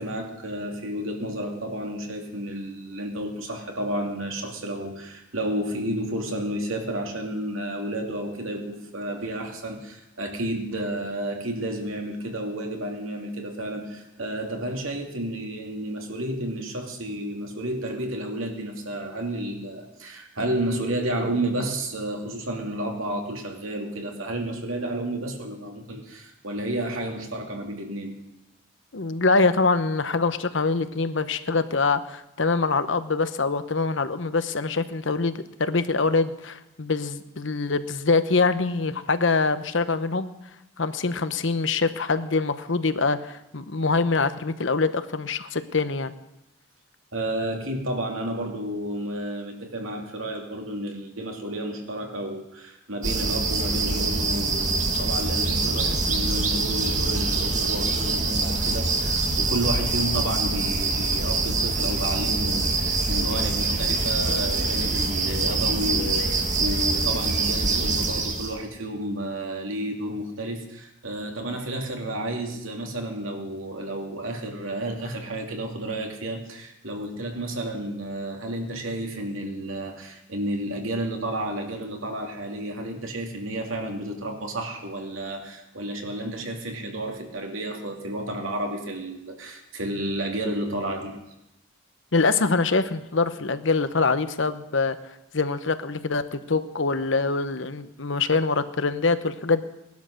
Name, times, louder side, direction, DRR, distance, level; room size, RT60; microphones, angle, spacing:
voice 1, 0.0-28.1 47.1-91.2, right 1 dB, 80° right, 2 dB, 2.7 m, -31 dB
voice 2, 28.9-40.3 40.8-46.1 92.1-95.0 95.3-99.6, left 4 dB, 65° left, 12 dB, 0.9 m, -24 dB
sound 1, 53.0-68.6, right 3 dB, 35° right, 1.7 m, -25 dB
18.5 x 11.5 x 6.6 m, 0.90 s
head